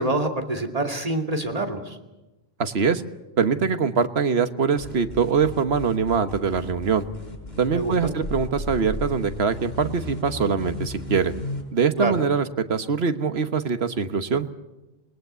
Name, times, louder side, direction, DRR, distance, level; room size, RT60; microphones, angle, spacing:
voice 1, 0.0-2.0 7.7-8.1 12.0-12.1, right 2 dB, 35° right, 3 dB, 2.7 m, -26 dB
voice 2, 2.6-3.0 3.4-7.0 7.6-11.3 11.7-14.5, right 5 dB, 85° right, 9 dB, 1.5 m, -23 dB
sound 1, 4.8-11.6, left 2 dB, 80° left, 5.6 m, -34 dB
27.5 x 20.5 x 8.2 m, 1.0 s
omnidirectional pair, 1.0 m